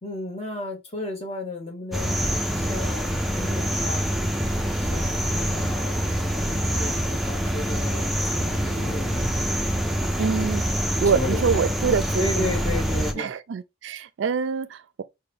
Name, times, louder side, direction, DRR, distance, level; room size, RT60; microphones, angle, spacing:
voice 1, 0.0-2.3 2.6-4.0 4.8-6.0 6.3-9.5 11.0-11.7 12.2-13.3, left 2 dB, 30° left, 1.1 m, -33 dB
sound 1, 1.9-13.1, equal, ahead, 0.4 m, -25 dB
voice 2, 10.2-10.6 11.0-12.6 13.1-15.0, right 6 dB, 80° right, 0.4 m, -25 dB
4.5 x 2.2 x 3.1 m
head